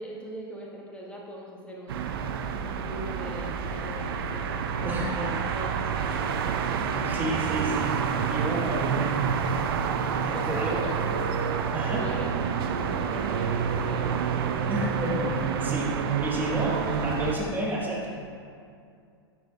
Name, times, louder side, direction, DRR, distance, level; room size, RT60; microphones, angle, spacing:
voice 1, 0.0-2.1 2.6-6.2 8.7-9.0 10.3-11.3 11.9-14.2, equal, 10° left, -3 dB, 1.2 m, -40 dB
sound 1, 1.9-17.4, right 6 dB, 65° right, 0.5 m, -28 dB
voice 2, 4.8-5.4 7.0-7.9 8.3-9.1 10.2-10.9 11.7-12.1 14.6-15.3 15.6-18.2, right 1 dB, 15° right, -4 dB, 1.5 m, -31 dB
9.3 x 5.8 x 2.4 m, 2.4 s
hypercardioid pair, 100°, 13 cm